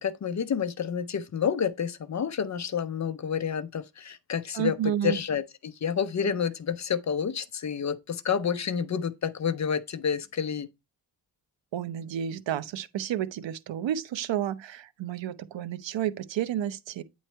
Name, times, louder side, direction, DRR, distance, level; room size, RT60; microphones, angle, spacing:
voice 1, 0.0-10.7, left 7 dB, 40° left, 0.5 m, -29 dB
voice 2, 4.5-5.2 11.7-17.0, right 10 dB, 80° right, 0.6 m, -31 dB
9.1 x 3.1 x 4.3 m
wide cardioid pair, 135°, 44 cm